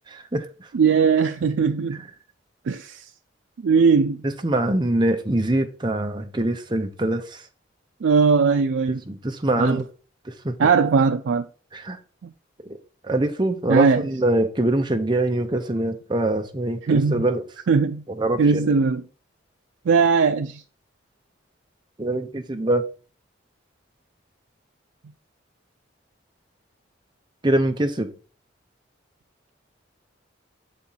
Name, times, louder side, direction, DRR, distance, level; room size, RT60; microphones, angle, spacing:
voice 1, 0.1-0.5 1.9-2.0 4.2-7.4 9.1-9.9 10.3-10.5 11.7-12.0 13.0-17.4 18.2-18.7 22.0-22.9 27.4-28.1, right 1 dB, 25° right, 0.7 m, -23 dB
voice 2, 0.7-2.0 2.7-3.0 3.6-4.3 8.0-9.0 9.6-9.8 10.6-11.5 12.2-12.3 13.7-14.1 16.8-17.3 17.7-18.0 18.4-19.0 19.9-20.6, right 5 dB, 75° right, 0.4 m, -19 dB
7.4 x 4.3 x 3.9 m
head